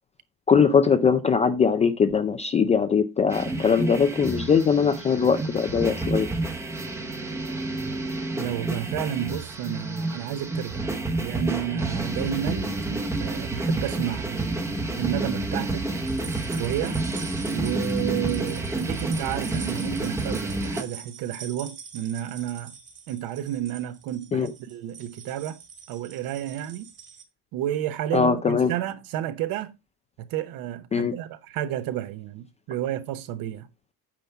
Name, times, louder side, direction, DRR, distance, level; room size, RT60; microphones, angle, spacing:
voice 1, 0.5-6.3 24.3-24.5 28.1-28.7 30.9-31.1, left 6 dB, 15° left, 0.4 m, -21 dB
sound 1, 3.3-20.8, right 2 dB, 5° right, 0.8 m, -29 dB
voice 2, 8.4-10.9 11.2-14.5 15.0-16.0 16.5-17.0 17.5-22.8 23.1-25.6 25.9-26.9 27.5-29.7 30.2-33.7, right 12 dB, 55° right, 1.0 m, -31 dB
sound 2, 16.1-27.2, right 6 dB, 25° right, 1.7 m, -44 dB
9.1 x 5.6 x 4.5 m
cardioid pair, 175°, 42 cm